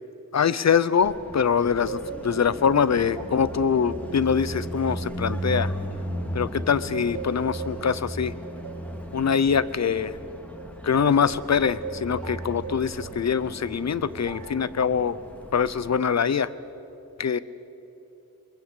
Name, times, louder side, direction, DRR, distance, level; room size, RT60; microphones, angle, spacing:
voice 1, 0.3-5.7 6.3-8.3 9.1-10.1 10.8-15.2 15.5-16.5 17.2-17.4, left 6 dB, 45° left, 17 dB, 0.8 m, -23 dB
Car passing by, 1.0-16.0, right 1 dB, 5° left, 2.2 m, -36 dB
sound 1, 1.5-6.5 6.9-11.3 11.8-13.2 14.2-14.7, right 7 dB, 80° right, 2.8 m, -41 dB
22.5 x 22.5 x 8.2 m, 3.0 s
wide cardioid pair, 100°, 36 cm